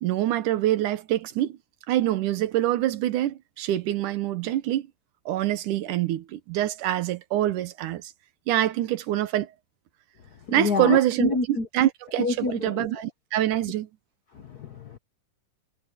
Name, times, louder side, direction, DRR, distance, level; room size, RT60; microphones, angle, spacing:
voice 1, 0.0-1.6 1.9-4.9 5.3-8.1 8.5-9.5 10.5-13.9, right 13 dB, 85° right, 2.6 m, -25 dB
voice 2, 10.5-11.7 12.2-12.9 14.3-15.0, left 4 dB, 80° left, 0.8 m, -28 dB
omnidirectional pair, 3.5 m